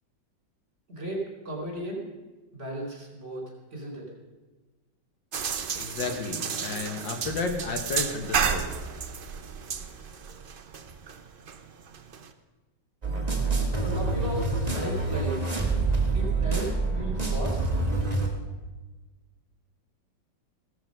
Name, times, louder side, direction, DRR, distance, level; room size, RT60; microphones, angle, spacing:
voice 1, 0.9-2.0 2.5-3.4 3.7-4.1 13.8-14.4 14.7-15.5 16.1-17.7, right 1 dB, 35° right, 0 dB, 4.3 m, -35 dB
sound 1, 5.3-12.3, right 6 dB, 65° right, 0.5 m, -32 dB
voice 2, 5.8-8.7, left 4 dB, 80° left, 5 dB, 2.3 m, -32 dB
sound 2, 13.0-18.3, right 3 dB, 20° right, 1.9 m, -26 dB
16.0 x 13.5 x 5.4 m, 1.2 s
omnidirectional pair, 2.0 m